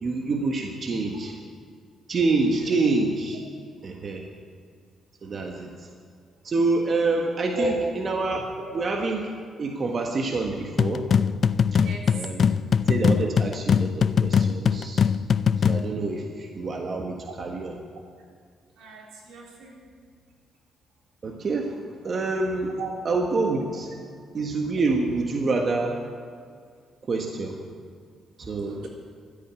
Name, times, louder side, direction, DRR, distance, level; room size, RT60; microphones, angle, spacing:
voice 1, 0.0-1.4 2.1-3.4 3.8-4.2 5.2-5.9 6.4-8.4 8.7-9.3 9.6-11.1 12.1-12.5 12.9-15.0 15.6-17.8 21.2-21.7 22.0-22.8 23.0-23.9 24.3-26.0 27.1-27.6 28.4-28.9, right 3 dB, 45° right, 2 dB, 1.5 m, -27 dB
sound 1, 10.8-15.9, left 7 dB, 50° left, 0.4 m, -22 dB
voice 2, 11.7-12.1 17.3-17.4 18.8-19.7 22.8-22.9 28.7-28.9, right 1 dB, 85° right, -2 dB, 3.8 m, -33 dB
13.5 x 8.9 x 9.8 m, 2.1 s
cardioid pair, 90°, 0 cm